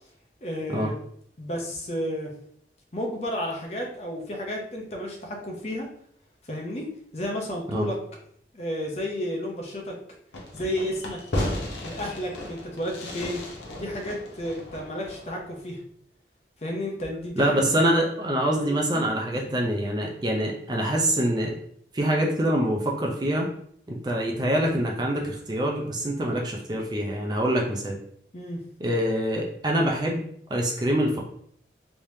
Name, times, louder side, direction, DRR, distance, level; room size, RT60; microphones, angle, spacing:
voice 1, 0.4-0.9 1.4-2.3 2.9-5.9 6.5-8.0 8.5-10.0 10.5-11.2 11.8-13.5 13.8-15.8 16.6-17.6 18.6-19.6 28.3-28.6, equal, 35° left, 0 dB, 0.7 m, -32 dB
Fireworks, 10.3-15.6, left 1 dB, 90° left, 0.8 m, -34 dB
voice 2, 17.4-21.5 21.9-23.5 23.9-28.0 28.8-31.2, right 1 dB, 25° right, 0 dB, 0.5 m, -25 dB
3.4 x 3.2 x 2.7 m, 0.65 s
head